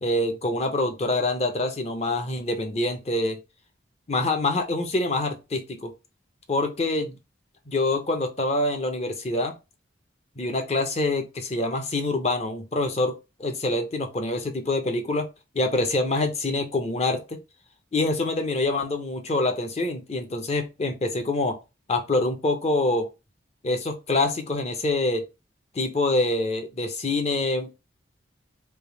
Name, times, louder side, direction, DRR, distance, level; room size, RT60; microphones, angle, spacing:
voice 1, 0.0-3.4 4.1-5.9 6.5-7.1 7.7-9.5 10.4-15.3 15.5-17.4 17.9-21.6 21.9-23.1 23.6-25.2 25.7-27.9, left 2 dB, 35° left, 0.6 m, -25 dB
3.4 x 2.7 x 2.9 m
head